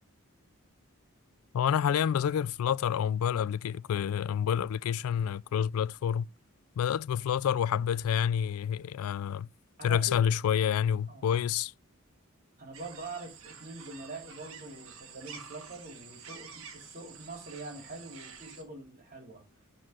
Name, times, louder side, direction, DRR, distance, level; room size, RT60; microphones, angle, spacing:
voice 1, 1.5-6.3 6.8-9.5 9.8-11.7, left 8 dB, 70° left, 0.3 m, -28 dB
voice 2, 9.8-10.2 11.1-11.3 12.6-19.4, right 2 dB, 40° right, 3.6 m, -44 dB
sound 1, 12.7-18.6, right 6 dB, 70° right, 1.7 m, -49 dB
11.0 x 4.4 x 3.7 m
head